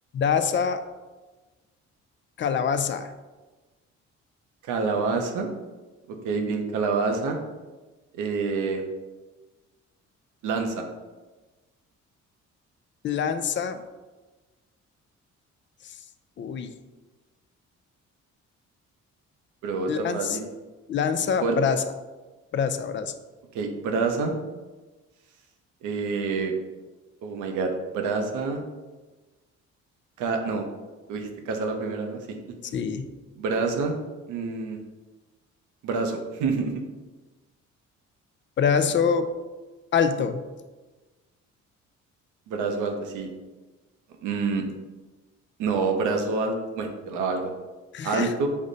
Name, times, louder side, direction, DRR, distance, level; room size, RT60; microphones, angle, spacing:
voice 1, 0.1-0.8 2.4-3.1 13.0-13.8 16.4-16.7 19.9-20.4 20.9-21.8 22.5-23.1 32.7-33.1 38.6-39.3 39.9-40.4 47.9-48.3, left 6 dB, 40° left, 9 dB, 0.4 m, -25 dB
voice 2, 4.6-5.5 6.1-7.4 8.1-8.8 10.4-10.8 19.6-20.4 21.4-21.6 23.5-24.3 25.8-26.5 27.2-28.6 30.2-30.7 31.1-32.2 33.4-34.0 34.3-34.8 35.8-36.7 42.5-43.3 44.2-44.6 45.6-47.5 48.0-48.5, right 4 dB, 85° right, 4 dB, 0.7 m, -27 dB
5.3 x 2.1 x 3.8 m, 1.2 s
cardioid pair, 90°, 30 cm